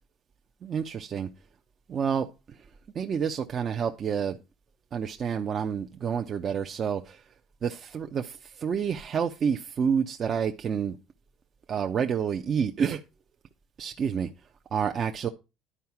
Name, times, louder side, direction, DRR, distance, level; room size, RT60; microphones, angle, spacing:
voice 1, 0.6-1.3 1.9-2.6 2.9-4.4 4.9-7.2 7.6-11.0 11.7-13.0 13.8-14.3 14.7-15.3, right 7 dB, 40° right, 0.7 m, -29 dB
11.0 x 4.7 x 5.8 m
cardioid pair, 125°, 0 cm